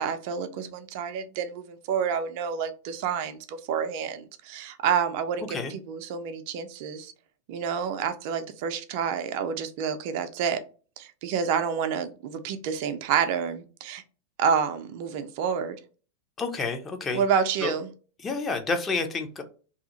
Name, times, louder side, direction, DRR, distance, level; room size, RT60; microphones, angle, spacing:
voice 1, 0.0-7.1 7.5-10.6 11.0-14.0 14.4-15.8 17.1-17.9, right 7 dB, 45° right, 0.4 m, -29 dB
voice 2, 16.4-17.2 17.6-17.7 18.2-19.4, left 4 dB, 20° left, 0.6 m, -29 dB
2.8 x 2.4 x 3.8 m
figure-of-eight pair, 90°, 0 cm